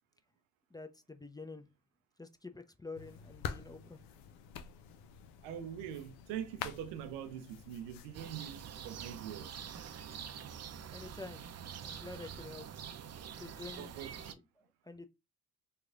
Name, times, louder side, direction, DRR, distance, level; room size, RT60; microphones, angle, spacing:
voice 1, 0.7-1.7 2.2-4.0 10.9-11.4 11.8-12.9 13.4-13.9 14.2-15.1, left 3 dB, 10° left, 0.5 m, -48 dB
sound 1, 2.9-8.3, left 8 dB, 90° left, 0.5 m, -47 dB
voice 2, 5.4-9.6 13.8-14.1, right 10 dB, 90° right, 0.6 m, -43 dB
sound 2, 8.1-14.3, right 8 dB, 40° right, 0.5 m, -46 dB
3.2 x 2.3 x 3.7 m
hypercardioid pair, 45°, 40 cm